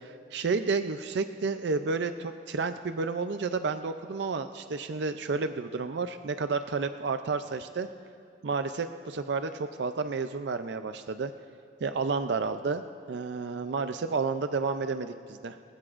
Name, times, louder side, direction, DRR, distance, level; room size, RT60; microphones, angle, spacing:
voice 1, 0.0-7.9 8.4-11.3 11.8-12.8 13.1-15.6, right 4 dB, 65° right, 9 dB, 0.4 m, -31 dB
25.5 x 15.5 x 2.5 m, 2.3 s
head